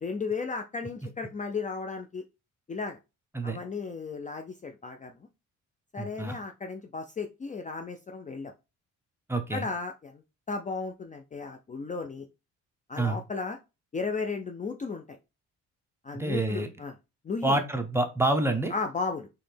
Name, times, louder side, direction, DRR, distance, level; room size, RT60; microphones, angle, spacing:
voice 1, 0.0-2.2 2.7-3.0 3.4-5.1 5.9-8.5 9.5-10.2 10.5-12.3 12.9-13.6 13.9-15.0 16.0-16.9 17.2-17.6 18.7-19.3, left 4 dB, 25° left, 5 dB, 0.5 m, -34 dB
voice 2, 6.0-6.4 9.3-9.7 13.0-13.2 16.1-16.7 17.4-18.7, right 2 dB, 10° right, 5 dB, 0.8 m, -27 dB
4.1 x 3.2 x 3.3 m, 0.26 s
cardioid pair, 90°, 30 cm